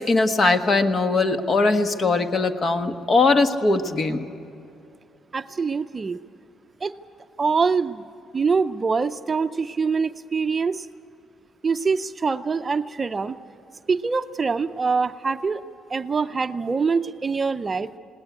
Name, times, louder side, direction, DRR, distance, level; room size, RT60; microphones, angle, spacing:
voice 1, 0.0-4.3, left 3 dB, 40° left, 8 dB, 1.5 m, -20 dB
voice 2, 5.3-6.2 6.8-6.9 7.4-8.0 8.3-10.9 11.6-13.4 13.9-15.6 15.9-17.9, right 5 dB, 30° right, 10 dB, 0.6 m, -24 dB
20.0 x 18.0 x 9.4 m, 2.6 s
cardioid pair, 90°, 0 cm